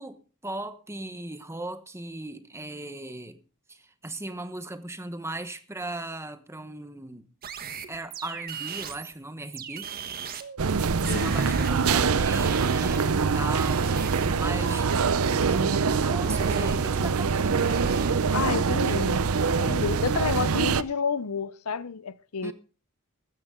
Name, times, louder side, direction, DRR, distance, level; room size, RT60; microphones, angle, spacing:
voice 1, 0.0-3.4 3.7-7.3 7.9-9.9 11.0-14.0 14.4-14.9 15.4-17.7 18.3-19.0 22.4-22.5, right 2 dB, 10° right, 1.2 m, -38 dB
sound 1, 7.4-9.1 9.5-13.3 13.6-15.5 16.2-16.8 17.4-18.2, right 5 dB, 45° right, 1.4 m, -38 dB
sound 2, 10.6-20.8, right 5 dB, 70° right, 0.6 m, -24 dB
voice 2, 18.3-19.3 19.6-22.5, left 5 dB, 80° left, 0.7 m, -30 dB
15.5 x 13.0 x 3.8 m
head